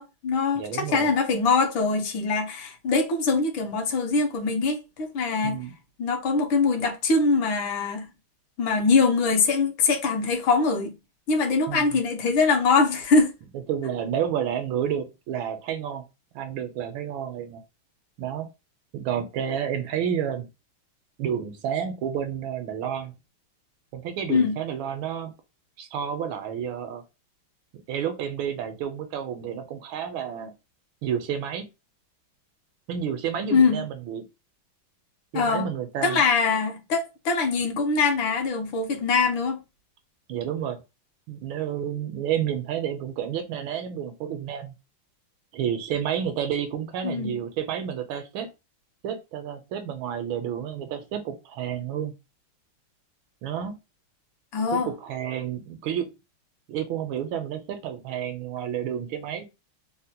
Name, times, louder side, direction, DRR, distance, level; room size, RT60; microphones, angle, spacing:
voice 1, 0.0-5.6 6.0-8.1 8.6-10.9 11.3-13.3 24.3-24.6 33.5-33.8 35.3-35.6 36.0-39.6 47.0-47.4 54.5-54.9, left 4 dB, 75° left, 1.5 m, -23 dB
voice 2, 0.6-1.1 5.4-5.7 11.7-11.8 13.5-16.0 16.3-17.6 18.2-18.5 18.9-20.5 21.2-23.1 23.9-25.3 25.8-27.0 27.9-30.5 31.0-31.7 32.9-34.3 35.3-36.2 40.3-40.8 41.3-44.7 45.5-48.5 49.0-52.1 53.4-53.8 54.7-56.1 56.7-59.5, right 9 dB, 85° right, 1.4 m, -30 dB
3.9 x 2.1 x 2.7 m
omnidirectional pair, 2.3 m